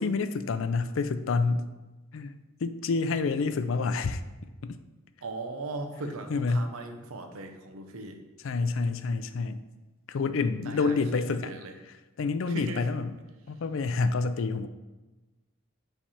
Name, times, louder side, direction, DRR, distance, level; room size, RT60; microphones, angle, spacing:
voice 1, 0.0-1.7 2.1-4.2 4.6-4.8 6.3-6.7 8.4-9.6 10.1-11.5 11.9-13.1 13.5-14.7, left 4 dB, 65° left, 11 dB, 0.4 m, -28 dB
voice 2, 5.2-8.2 10.6-11.7 12.5-12.9, right 2 dB, 90° right, 5 dB, 0.8 m, -38 dB
7.3 x 3.3 x 4.2 m, 1.1 s
head